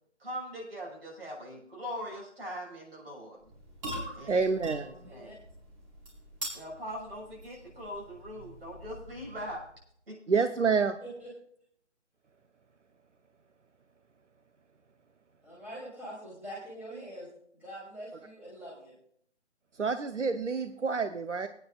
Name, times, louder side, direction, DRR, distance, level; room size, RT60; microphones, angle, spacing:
voice 1, 0.2-3.4 4.1-5.4 6.5-9.6 10.1-10.2, equal, 55° right, -1 dB, 6.5 m, -41 dB
sound 1, 3.4-9.8, right 1 dB, 25° right, 4.3 m, -44 dB
voice 2, 4.3-4.9 10.3-11.0 19.8-21.5, right 5 dB, 85° right, 9 dB, 0.9 m, -28 dB
voice 3, 5.0-5.3 11.0-11.3 15.4-17.3 17.5-18.9, right 1 dB, 5° right, -7 dB, 3.3 m, -44 dB
24.5 x 9.4 x 2.4 m, 0.65 s
figure-of-eight pair, 150°, 35 cm